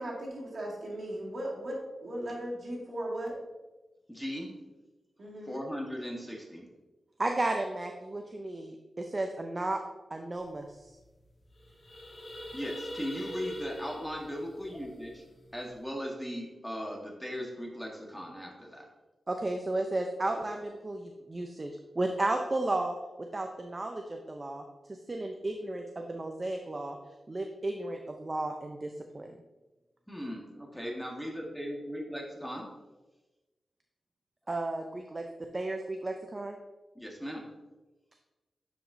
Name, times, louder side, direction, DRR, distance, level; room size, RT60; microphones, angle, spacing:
voice 1, 0.0-3.4 5.2-5.6, right 1 dB, 60° right, -3 dB, 2.1 m, -37 dB
voice 2, 4.1-4.5 5.5-6.7 12.5-15.2 15.5-18.9 30.1-32.7 36.9-37.4, equal, 5° left, 0 dB, 1.3 m, -38 dB
voice 3, 7.2-9.8 10.1-10.7 19.3-21.7 22.0-23.0 23.3-24.6 25.1-27.0 27.3-29.3 34.5-35.2 35.5-36.6, right 2 dB, 35° right, 4 dB, 0.6 m, -33 dB
sound 1, 10.5-10.6 10.8-11.1 11.4-15.7, left 1 dB, 45° left, 2.2 m, -44 dB
9.3 x 5.0 x 2.6 m, 1.1 s
cardioid pair, 70°, 0 cm